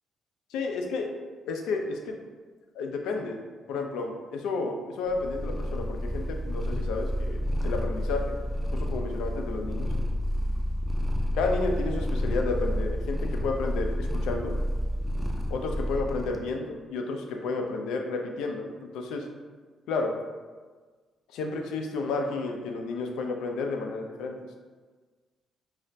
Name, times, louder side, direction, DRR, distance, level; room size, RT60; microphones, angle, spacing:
voice 1, 0.5-1.2 1.5-2.2 2.7-3.4 3.7-8.4 8.7-9.9 11.3-14.5 15.5-19.3 19.9-20.1 21.3-24.3, left 3 dB, 90° left, 3 dB, 0.3 m, -31 dB
Purr, 5.1-16.4, equal, 5° right, 0.4 m, -30 dB
2.4 x 2.1 x 3.9 m, 1.4 s
cardioid pair, 90°, 0 cm